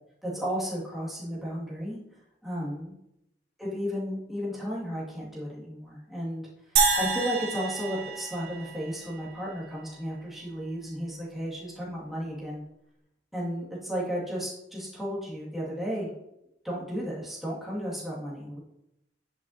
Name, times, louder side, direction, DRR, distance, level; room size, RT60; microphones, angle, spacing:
voice 1, 0.2-2.0 2.4-2.9 3.6-6.4 7.0-12.6 13.3-16.1 16.6-18.6, equal, ahead, -7 dB, 2.1 m, -33 dB
sound 1, 6.8-9.2, right 5 dB, 55° right, 1.7 m, -28 dB
9.8 x 5.7 x 2.7 m, 0.85 s
head